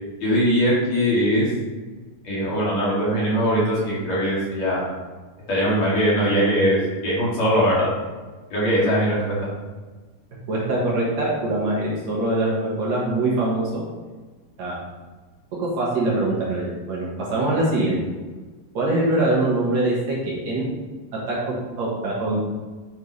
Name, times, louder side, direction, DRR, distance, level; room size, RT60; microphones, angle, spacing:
voice 1, 0.2-1.5 2.2-4.8 5.5-6.8 7.0-7.9 8.5-9.4, equal, 50° left, -7 dB, 3.6 m, -21 dB
voice 2, 10.5-13.8 14.6-14.8 15.6-18.0 18.7-20.7 21.3-22.6, right 2 dB, 60° right, -5 dB, 2.5 m, -23 dB
9.6 x 6.6 x 3.2 m, 1.3 s
omnidirectional pair, 4.0 m